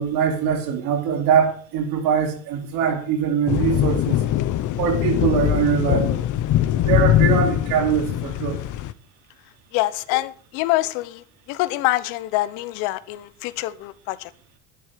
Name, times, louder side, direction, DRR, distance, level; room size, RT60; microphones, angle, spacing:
voice 1, 0.0-4.2 4.8-6.3 6.8-8.6, right 8 dB, 75° right, 4.2 m, -22 dB
sound 1, 3.5-8.9, left 12 dB, 60° left, 1.0 m, -21 dB
voice 2, 9.7-14.3, left 17 dB, 85° left, 1.2 m, -25 dB
11.0 x 10.5 x 6.6 m
supercardioid pair, 105°, 35 cm